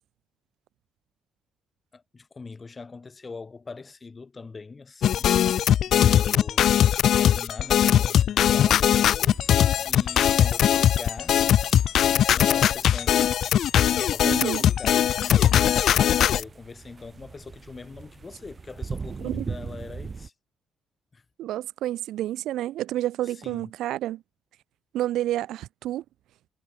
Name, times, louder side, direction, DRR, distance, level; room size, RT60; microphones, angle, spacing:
voice 1, 1.9-5.4 5.8-6.7 7.1-9.4 9.8-11.4 12.3-13.4 13.9-20.3 21.1-21.2 23.2-23.7, left 4 dB, 30° left, 5.0 m, -41 dB
sound 1, 5.0-16.4, left 10 dB, 70° left, 0.4 m, -20 dB
sound 2, 9.2-20.3, right 5 dB, 35° right, 1.6 m, -41 dB
voice 2, 14.2-14.6 19.2-19.5 21.4-24.2 24.9-26.0, right 13 dB, 85° right, 2.6 m, -29 dB
cardioid pair, 90°, 0 cm